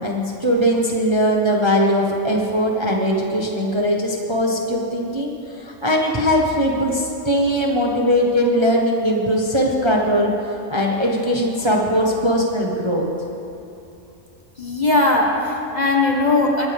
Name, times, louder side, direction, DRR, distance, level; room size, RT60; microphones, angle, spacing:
voice 1, 0.0-13.1, equal, 20° right, -1 dB, 1.2 m, -20 dB
voice 2, 14.6-16.7, left 2 dB, 30° left, -1 dB, 1.6 m, -19 dB
21.0 x 14.5 x 3.6 m, 2.7 s
omnidirectional pair, 1.5 m